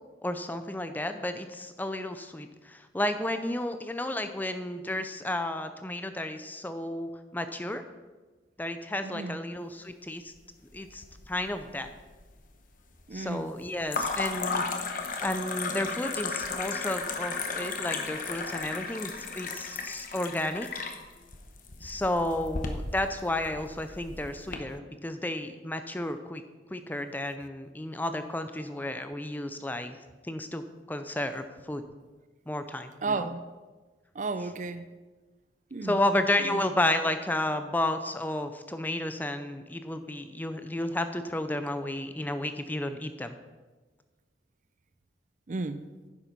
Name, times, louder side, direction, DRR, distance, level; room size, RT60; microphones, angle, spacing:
voice 1, 0.2-7.8 8.6-10.3 10.7-11.9 13.1-14.6 15.2-20.7 21.8-26.4 26.7-30.0 30.2-31.8 32.5-33.3 35.8-43.3, left 1 dB, 10° left, 9 dB, 0.5 m, -32 dB
voice 2, 9.0-9.4 13.1-13.5 33.0-33.4 34.2-34.8 35.7-36.0 36.5-36.6 45.5-45.9, right 3 dB, 40° right, 12 dB, 0.4 m, -33 dB
sound 1, 10.7-11.5 11.8-12.4 13.9-24.6, left 4 dB, 45° left, 1.0 m, -34 dB
10.0 x 7.2 x 5.3 m, 1.3 s
head